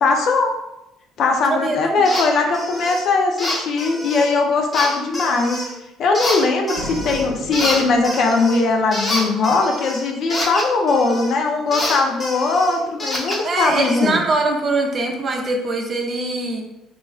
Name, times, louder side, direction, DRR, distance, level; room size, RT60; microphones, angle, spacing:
voice 1, 0.0-0.5 1.2-5.6 6.0-14.3, left 3 dB, 65° left, 2 dB, 0.5 m, -19 dB
voice 2, 1.5-2.0 13.4-16.6, right 3 dB, 40° right, 2 dB, 0.5 m, -22 dB
sound 1, 2.0-2.3 2.5-3.0 3.4-4.3 4.7-5.7 6.1-7.3 7.5-11.3 11.7-14.1, left 1 dB, 30° left, 0.8 m, -27 dB
sound 2, 6.7-8.5, left 1 dB, 80° left, 0.9 m, -34 dB
3.0 x 2.4 x 2.3 m, 0.87 s
supercardioid pair, 90°, 0 cm